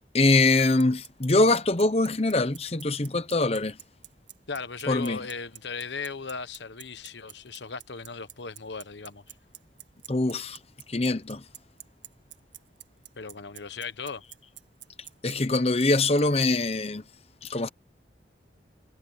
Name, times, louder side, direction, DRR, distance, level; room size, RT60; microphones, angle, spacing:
voice 1, 0.1-3.8 4.9-5.2 10.1-10.6 10.9-11.4 15.2-17.0 17.4-17.7, left 2 dB, 35° left, 0.9 m, -23 dB
Bicycle, 0.6-16.5, right 14 dB, 75° right, 1.8 m, -45 dB
voice 2, 4.5-9.3 13.2-14.2, left 5 dB, 75° left, 1.1 m, -37 dB
head